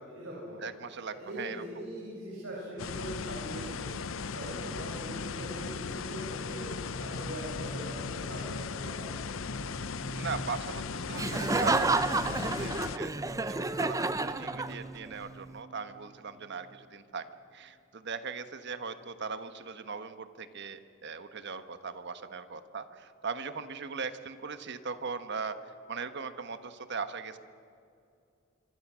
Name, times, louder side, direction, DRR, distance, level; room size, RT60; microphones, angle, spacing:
voice 1, 0.0-0.6 1.1-4.0 4.3-6.7 7.0-9.1, right 1 dB, 80° right, -5 dB, 7.2 m, -41 dB
voice 2, 0.6-1.6 10.1-27.4, right 5 dB, 60° right, 10 dB, 1.3 m, -39 dB
sound 1, 2.8-13.0, left 5 dB, 70° left, 0.6 m, -37 dB
sound 2, 4.8-17.0, right 2 dB, 40° left, 4.8 m, -46 dB
Laughter, 11.1-15.1, right 3 dB, 15° right, 0.7 m, -30 dB
25.5 x 24.5 x 6.3 m, 2.5 s
head